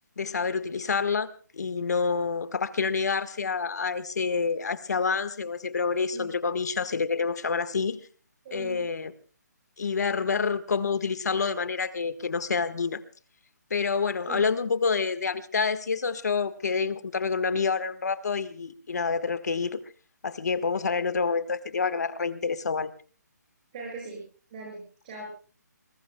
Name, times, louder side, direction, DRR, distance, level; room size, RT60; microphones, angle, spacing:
voice 1, 0.2-1.3 1.5-8.0 8.5-9.1 9.8-13.0 13.7-19.8 20.2-22.9, left 5 dB, 65° left, 1.5 m, -28 dB
voice 2, 8.4-8.8 14.3-14.5 23.7-24.2 24.5-25.3, right 3 dB, 30° right, 7.0 m, -39 dB
27.5 x 21.5 x 2.3 m
hypercardioid pair, 170°, 10 cm